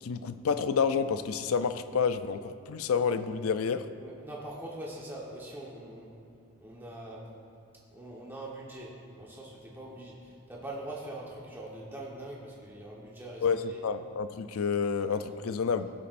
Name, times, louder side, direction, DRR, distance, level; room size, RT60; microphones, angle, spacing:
voice 1, 0.0-3.9 13.4-15.9, left 6 dB, 75° left, 11 dB, 0.4 m, -29 dB
voice 2, 4.0-6.1 6.6-7.2 7.9-13.8, right 1 dB, 10° right, -4 dB, 1.2 m, -43 dB
16.5 x 8.4 x 2.6 m, 2.7 s
head